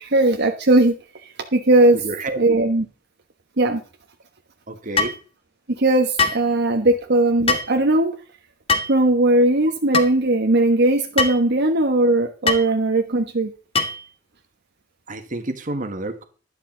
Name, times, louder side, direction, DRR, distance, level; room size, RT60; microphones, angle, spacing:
voice 1, 0.0-2.0 2.4-2.8 3.6-3.8 5.7-8.2 8.9-13.5, right 2 dB, 60° right, 3 dB, 1.2 m, -18 dB
voice 2, 2.0-2.4 4.7-5.2 15.1-16.2, right 2 dB, 45° right, 8 dB, 1.7 m, -29 dB
sound 1, 5.0-5.2 6.2-6.4 7.5-7.7 8.7-9.0 9.9-10.1 11.2-11.4 12.5-12.7 13.7-14.1, left 4 dB, 30° left, 1.5 m, -21 dB
12.0 x 11.5 x 3.9 m, 0.35 s
head